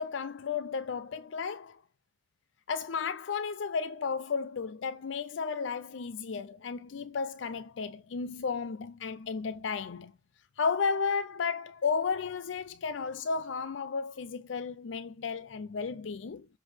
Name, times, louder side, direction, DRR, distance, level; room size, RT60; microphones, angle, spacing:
voice 1, 0.0-1.8 2.7-10.1 10.6-16.5, left 5 dB, 80° left, 0.5 m, -33 dB
7.8 x 3.8 x 6.4 m
head